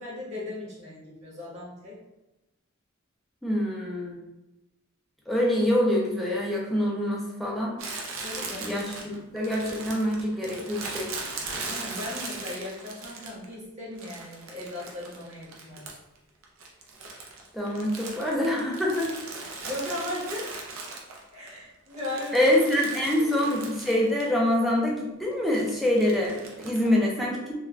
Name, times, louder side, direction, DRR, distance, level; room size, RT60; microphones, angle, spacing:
voice 1, 0.0-2.0 8.2-8.8 9.4-9.5 11.6-15.9 19.6-20.5 21.3-22.5 23.2-23.4 26.8-27.0, left 1 dB, 30° right, -7 dB, 0.9 m, -37 dB
voice 2, 3.4-4.2 5.3-7.7 8.6-11.1 17.5-19.1 22.3-27.6, left 1 dB, ahead, -4 dB, 0.4 m, -25 dB
Crumpling crinkling, 7.8-13.5 14.0-16.2 16.4-21.5 21.9-24.3 24.5-24.6 25.5-26.9, right 3 dB, 70° right, 0.5 m, -39 dB
2.4 x 2.1 x 3.1 m, 0.99 s
head